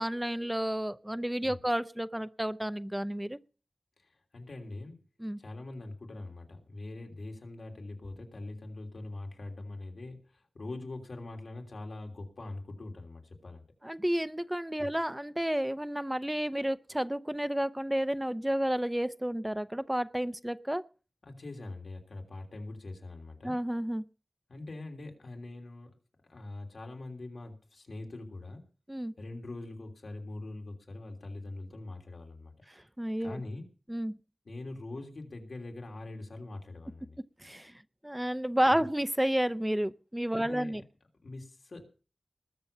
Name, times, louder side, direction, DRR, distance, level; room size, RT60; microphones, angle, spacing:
voice 1, 0.0-3.4 5.2-5.4 13.8-20.8 23.4-24.0 28.9-29.1 33.0-33.4 33.9-34.2 37.4-37.7 38.0-40.8, equal, 10° right, 0.6 m, -31 dB
voice 2, 4.0-5.0 5.4-13.6 14.8-14.9 21.2-23.6 24.5-26.0 26.3-28.6 29.2-32.5 33.2-33.7 34.4-37.2 38.7-38.8 40.3-40.8 41.2-41.9, left 2 dB, 85° left, 3.1 m, -43 dB
20.0 x 6.9 x 6.8 m
wide cardioid pair, 70°, 0 cm